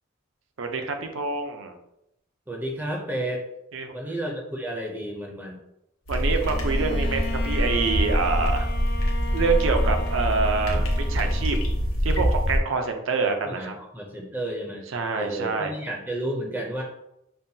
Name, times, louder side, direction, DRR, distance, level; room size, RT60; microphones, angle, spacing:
voice 1, 0.6-1.7 3.7-3.9 6.1-8.7 9.3-11.6 12.0-13.7 14.9-15.7, right 4 dB, 70° right, 5 dB, 0.5 m, -26 dB
voice 2, 2.5-3.5 3.9-5.6 13.5-14.8 15.1-16.8, right 1 dB, 10° right, -1 dB, 0.5 m, -31 dB
sound 1, 6.1-12.6, equal, 85° left, 0.8 m, -24 dB
Bowed string instrument, 6.4-12.2, left 2 dB, 50° left, 0.4 m, -37 dB
5.4 x 2.2 x 2.7 m, 0.82 s
head